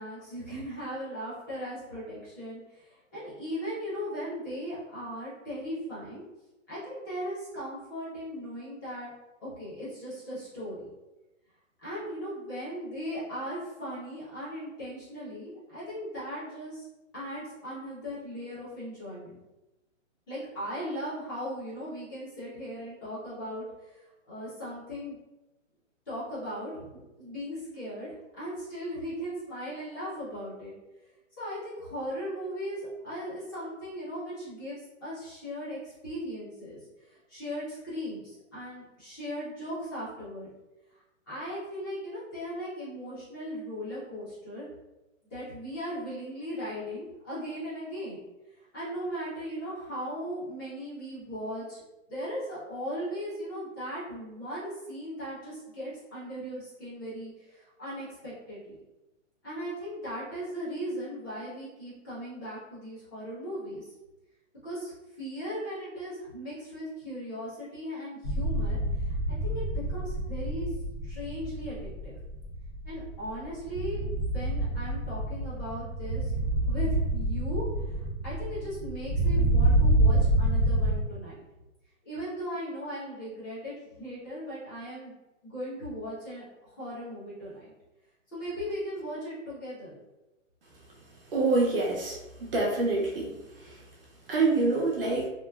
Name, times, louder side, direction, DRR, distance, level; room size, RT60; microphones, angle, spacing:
voice 1, 0.0-6.2 6.7-9.1 9.4-10.9 11.8-16.9 17.1-19.4 20.3-25.2 26.1-30.7 31.4-36.8 37.1-40.5 41.3-44.7 45.3-48.2 48.7-51.8 52.1-58.8 59.4-63.9 64.6-69.2 69.4-69.6 69.9-70.7 71.0-72.2 72.8-76.3 76.7-78.0 78.2-81.4 82.0-85.1 85.4-87.7 88.3-89.9, equal, 15° left, -10 dB, 0.8 m, -38 dB
sound 1, 68.2-81.0, right 1 dB, 45° left, 1.3 m, -27 dB
voice 2, 91.3-92.2 92.5-93.3 93.6-93.8 94.3-95.3, right 3 dB, 45° right, -3 dB, 0.5 m, -26 dB
3.0 x 2.4 x 2.2 m, 1.0 s
hypercardioid pair, 170°, 39 cm